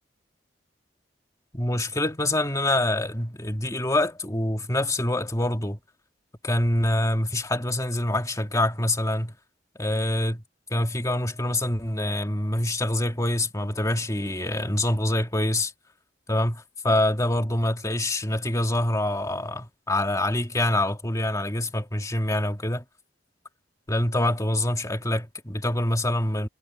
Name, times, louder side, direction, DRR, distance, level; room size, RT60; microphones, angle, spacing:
voice 1, 1.5-5.8 6.4-9.3 9.8-10.4 10.7-15.7 16.3-22.8 23.9-26.5, left 1 dB, 20° left, 2.2 m, -25 dB
head